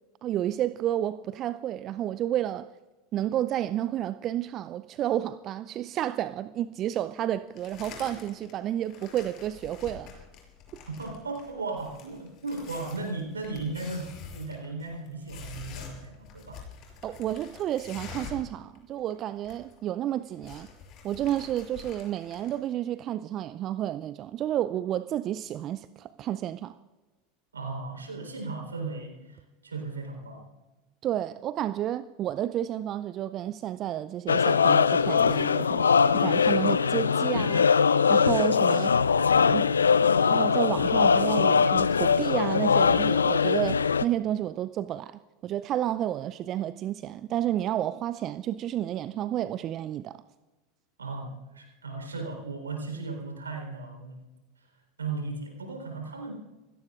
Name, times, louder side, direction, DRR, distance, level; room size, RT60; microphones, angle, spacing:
voice 1, 0.2-2.7 3.1-10.2 17.0-20.7 21.0-26.8 31.0-35.9 36.1-37.7 38.1-38.9 39.4-39.7 40.2-50.2, right 12 dB, 40° right, 0.5 m, -31 dB
sound 1, 7.6-8.5 8.8-18.5 18.7-18.8 19.1-19.8 20.1-22.6, left 6 dB, 45° left, 6.1 m, -46 dB
voice 2, 10.9-16.6 27.5-30.5 51.0-54.2 55.0-56.3, right 3 dB, 80° right, 3.9 m, -36 dB
sound 2, 34.3-44.0, left 6 dB, 80° left, 0.4 m, -22 dB
28.0 x 17.0 x 2.5 m
figure-of-eight pair, 80°, 0 cm